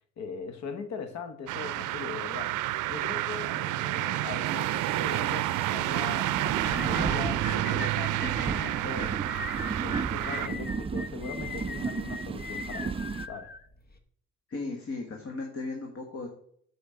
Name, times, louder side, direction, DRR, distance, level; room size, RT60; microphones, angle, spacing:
voice 1, 0.2-2.6 2.9-9.2 9.8-13.5, left 5 dB, 65° left, 9 dB, 1.3 m, -40 dB
sound 1, 1.5-10.5, right 16 dB, 85° right, 0.4 m, -30 dB
sound 2, 4.4-13.3, right 5 dB, 20° right, 0.3 m, -35 dB
sound 3, 6.6-14.0, left 4 dB, 30° left, 1.2 m, -41 dB
voice 2, 14.5-16.3, left 3 dB, 50° left, 1 dB, 1.7 m, -36 dB
8.1 x 5.1 x 4.9 m, 0.65 s
cardioid pair, 90°, 30 cm